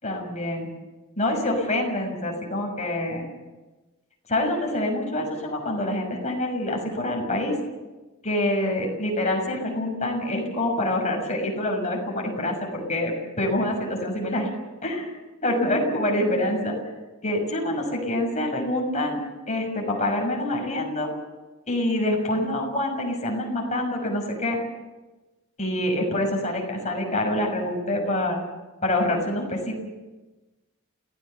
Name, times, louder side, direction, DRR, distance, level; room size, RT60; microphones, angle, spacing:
voice 1, 0.0-0.7 1.2-3.3 4.3-7.5 8.2-14.5 14.8-15.1 15.4-16.8 17.2-21.1 21.7-24.6 25.6-28.4 28.8-29.8, left 1 dB, 35° left, 1 dB, 6.4 m, -26 dB
29.0 x 17.5 x 6.9 m, 1.2 s
head